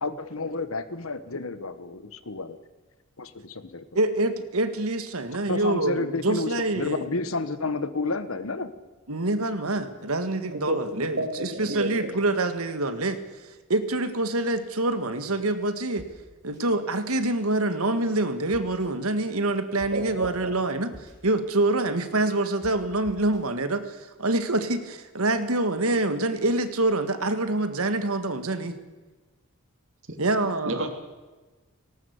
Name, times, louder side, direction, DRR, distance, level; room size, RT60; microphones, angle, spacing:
voice 1, 0.0-2.6 3.2-3.9 5.5-8.7, left 3 dB, 75° left, 13 dB, 1.3 m, -31 dB
voice 2, 3.9-7.1 9.1-13.2 13.7-16.0 16.4-20.9 21.2-23.9 24.2-28.7 30.2-30.9, right 2 dB, 90° right, 10 dB, 1.8 m, -26 dB
voice 3, 10.5-12.1 19.9-20.5 30.1-30.2 30.6-30.9, right 1 dB, 65° right, 5 dB, 3.0 m, -31 dB
sound 1, 16.0-16.1 16.5-16.6 18.5-18.9 19.8-19.9 20.2-20.3 20.9-21.1 22.6-22.7 23.0-23.4, right 1 dB, 15° right, 5.7 m, -45 dB
18.5 x 18.0 x 8.2 m, 1.2 s
head